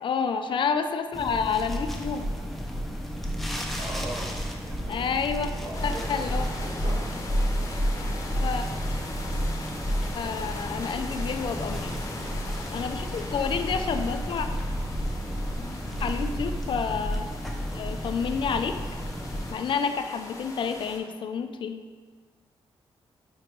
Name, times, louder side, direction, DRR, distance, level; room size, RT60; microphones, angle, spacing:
voice 1, 0.0-2.3 4.9-5.5 5.8-6.5 8.4-8.7 10.1-11.9 12.7-14.5 16.0-17.3 17.7-18.8 19.5-21.8, left 6 dB, 55° left, 8 dB, 0.4 m, -29 dB
sound 1, 1.1-19.5, equal, ahead, 0.6 m, -31 dB
voice 2, 3.8-5.0 5.6-7.0, right 1 dB, 55° right, -2 dB, 1.4 m, -40 dB
sound 2, 5.7-21.0, left 2 dB, 30° left, 0.8 m, -41 dB
5.1 x 4.8 x 4.5 m, 1.5 s
wide cardioid pair, 150°, 10 cm